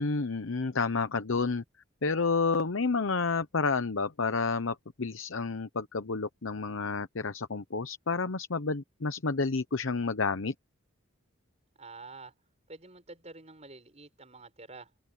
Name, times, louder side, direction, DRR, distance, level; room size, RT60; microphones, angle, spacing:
voice 1, 0.0-1.6 2.0-10.5, left 4 dB, 70° left, 0.9 m, -30 dB
voice 2, 11.8-12.3 12.7-14.9, right 3 dB, 30° right, 6.5 m, -48 dB
open air
head